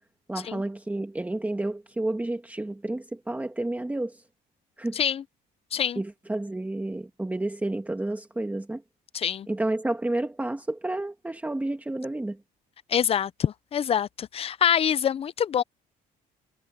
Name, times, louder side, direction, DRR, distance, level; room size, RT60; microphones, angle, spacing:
voice 1, 0.3-4.2 4.8-5.0 5.9-8.8 9.5-12.4, right 2 dB, 10° right, 1.5 m, -30 dB
voice 2, 4.9-5.2 5.7-6.0 9.1-9.5 12.9-15.6, left 8 dB, 35° left, 0.5 m, -25 dB
cardioid pair, 110°, 17 cm